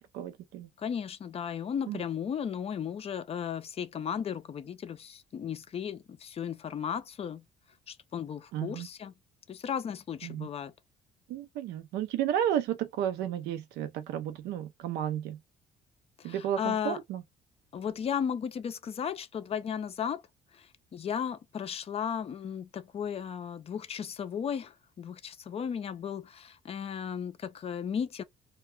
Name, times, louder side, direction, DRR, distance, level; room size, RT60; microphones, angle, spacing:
voice 1, 0.1-0.7 1.9-2.0 8.5-8.9 10.2-10.5 11.3-15.4 16.2-17.2, right 10 dB, 80° right, 0.4 m, -32 dB
voice 2, 0.8-7.4 7.9-9.1 9.5-10.7 16.2-17.0 17.7-20.2 20.5-28.2, left 8 dB, 35° left, 0.4 m, -35 dB
2.2 x 2.2 x 3.0 m
cardioid pair, 110°, 17 cm